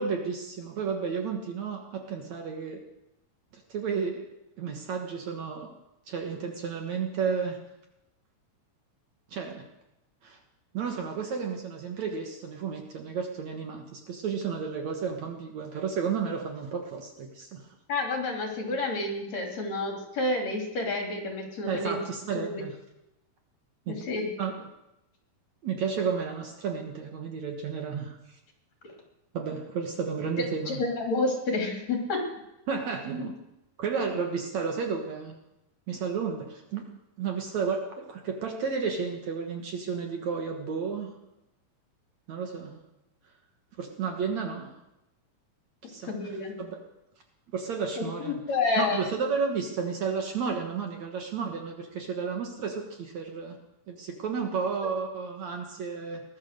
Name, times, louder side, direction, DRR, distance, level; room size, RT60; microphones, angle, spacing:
voice 1, 0.0-2.8 3.5-4.3 4.6-5.7 6.1-7.6 9.3-9.7 10.2-10.4 10.7-17.7 21.7-22.8 23.9-24.0 24.4-24.5 25.6-28.4 29.3-30.8 32.7-33.4 33.8-35.4 35.9-36.9 37.2-41.1 42.3-42.8 43.8-44.7 45.8-46.8 47.5-48.4 48.8-53.6 53.9-56.2, right 5 dB, 60° right, 3 dB, 2.4 m, -32 dB
voice 2, 17.9-22.0 22.3-22.6 24.1-24.3 30.7-32.2 46.1-46.5 48.2-49.1, left 3 dB, 50° left, 1 dB, 3.9 m, -29 dB
19.0 x 11.5 x 6.5 m, 0.90 s
omnidirectional pair, 4.2 m